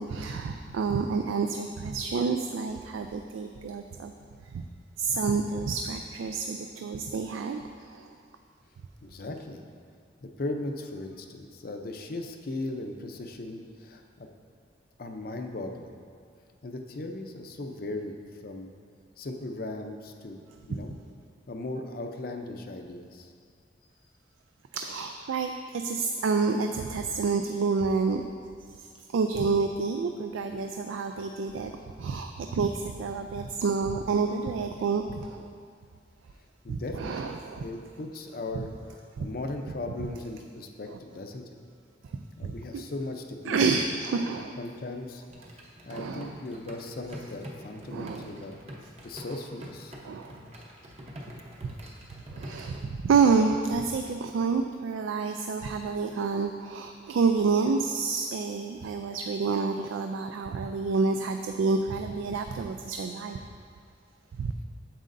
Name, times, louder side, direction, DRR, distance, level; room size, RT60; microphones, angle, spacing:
voice 1, 0.0-4.1 4.5-4.6 5.0-7.6 7.9-8.1 24.7-28.2 28.8-31.7 32.0-35.5 36.7-37.7 39.2-39.3 40.9-41.0 42.4-42.8 43.5-44.5 45.9-46.4 47.9-48.3 50.0-50.3 52.3-63.4 64.4-64.5, right 4 dB, 90° right, 5 dB, 0.3 m, -28 dB
voice 2, 9.0-9.6 10.2-14.3 15.0-15.9 16.6-18.2 18.4-18.7 19.2-21.0 21.5-23.3 36.6-41.4 42.4-44.3 44.6-45.2 45.8-48.6 49.0-49.9, left 2 dB, 50° left, 4 dB, 0.5 m, -38 dB
sound 1, 45.3-52.8, equal, 35° right, 0.8 m, -46 dB
9.0 x 7.5 x 2.6 m, 2.2 s
head